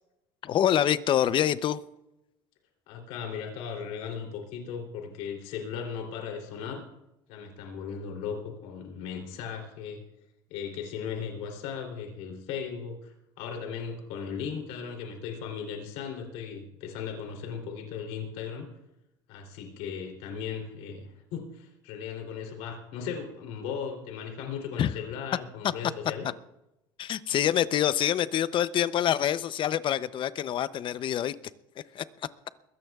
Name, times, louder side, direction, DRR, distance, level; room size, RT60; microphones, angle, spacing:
voice 1, 0.4-1.8 24.8-24.9 27.0-31.4 31.9-32.0, left 10 dB, 45° left, 15 dB, 0.6 m, -26 dB
voice 2, 2.9-6.8 7.3-10.0 10.5-18.7 19.3-26.3, left 7 dB, 75° left, 2 dB, 3.2 m, -37 dB
22.0 x 16.0 x 2.4 m, 0.90 s
supercardioid pair, 105°, 12 cm